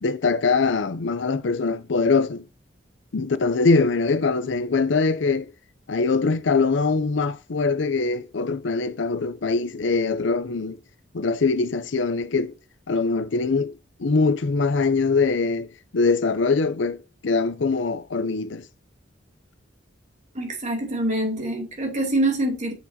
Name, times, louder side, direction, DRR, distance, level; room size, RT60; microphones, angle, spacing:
voice 1, 0.0-2.4 3.1-5.5 5.9-10.8 11.1-12.5 12.9-13.7 14.0-15.7 15.9-18.7, left 4 dB, 70° left, 0.6 m, -22 dB
voice 2, 20.3-22.7, right 1 dB, 40° right, 2.5 m, -25 dB
8.1 x 6.2 x 2.7 m
head